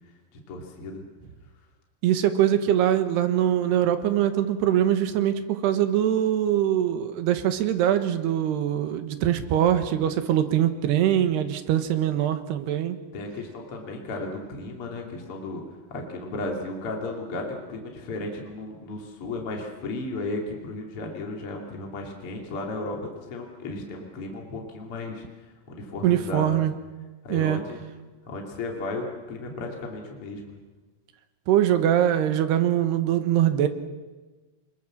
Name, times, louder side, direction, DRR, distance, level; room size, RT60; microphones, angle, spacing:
voice 1, 0.5-1.0 13.1-15.6 15.9-26.6 27.2-27.8 28.3-30.6, left 2 dB, 35° left, 1 dB, 3.3 m, -34 dB
voice 2, 2.0-13.0 26.0-26.7 27.3-27.6 31.5-33.7, right 11 dB, 75° right, 9 dB, 3.3 m, -23 dB
27.5 x 21.0 x 7.4 m, 1.3 s
omnidirectional pair, 4.8 m